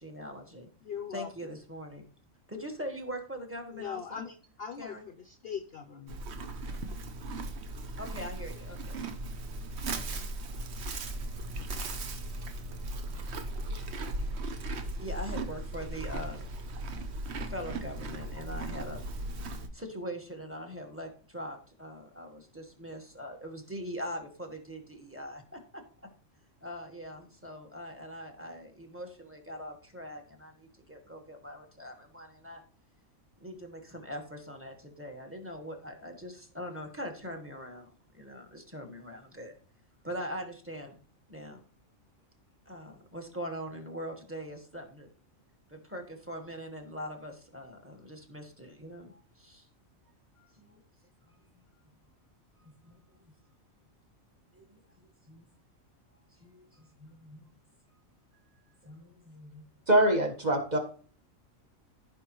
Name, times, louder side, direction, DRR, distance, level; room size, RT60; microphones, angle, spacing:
voice 1, 0.0-0.7 1.1-2.0 2.5-4.3 4.8-5.0 8.0-9.0 9.9-10.2 15.0-16.5 17.4-19.4 19.7-25.8 26.6-32.6 33.4-39.5 40.0-41.0 41.3-41.6 42.6-45.1 45.7-49.7 50.6-50.8 51.3-51.6 52.6-53.0 54.5-55.5 56.4-57.5 58.8-59.6, equal, 10° right, 3 dB, 1.3 m, -42 dB
voice 2, 0.8-1.5 3.7-6.2, left 7 dB, 60° left, 6 dB, 0.7 m, -41 dB
Livestock farm animals working animals, 6.1-19.7, right 2 dB, 55° right, 1.0 m, -37 dB
voice 3, 59.9-60.8, right 1 dB, 35° right, 2 dB, 1.3 m, -24 dB
15.0 x 5.2 x 3.0 m, 0.43 s
omnidirectional pair, 1.4 m